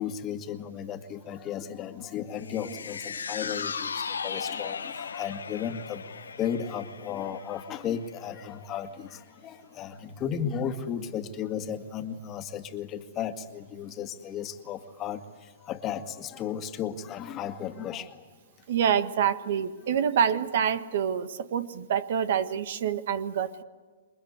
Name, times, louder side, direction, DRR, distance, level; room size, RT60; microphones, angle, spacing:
voice 1, 0.0-18.2, left 8 dB, 30° left, 8 dB, 1.9 m, -35 dB
sound 1, 2.4-8.8 9.2-9.3, left 6 dB, 85° left, 1.2 m, -37 dB
voice 2, 18.7-23.6, right 8 dB, 60° right, 13 dB, 1.4 m, -26 dB
28.0 x 22.5 x 8.2 m, 1.5 s
hypercardioid pair, 125°, 0 cm